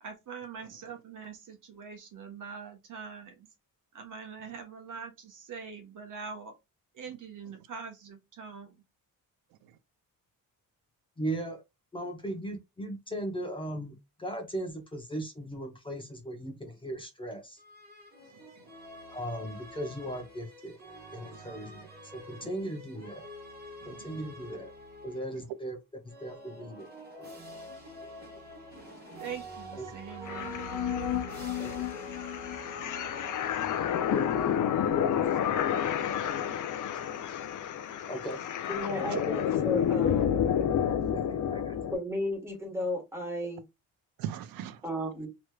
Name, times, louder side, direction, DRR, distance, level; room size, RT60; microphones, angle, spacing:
voice 1, 0.0-3.5 3.9-6.5 6.9-8.8 29.2-30.6, right 6 dB, 60° right, 1.0 m, -43 dB
voice 2, 11.2-11.6 11.9-17.6 19.1-20.8 21.1-21.9 22.1-23.3 23.8-24.7 25.0-25.8 26.2-26.9 29.8-29.9 31.6-32.0 34.1-34.7 38.1-38.4 41.1-41.2 41.5-41.8, right 1 dB, 15° left, 0.7 m, -38 dB
sound 1, 17.6-25.4 26.0-34.0, right 1 dB, 30° right, 1.4 m, -46 dB
voice 3, 23.8-24.2 31.2-31.6 32.6-32.9 35.2-35.4 39.1-39.2 44.2-44.8, right 11 dB, 90° right, 0.5 m, -40 dB
sound 2, 30.2-42.0, left 9 dB, 65° left, 0.5 m, -30 dB
voice 4, 38.7-40.4 41.9-43.6 44.8-45.3, left 1 dB, 5° right, 1.3 m, -34 dB
3.1 x 2.9 x 2.2 m
cardioid pair, 145°, 34 cm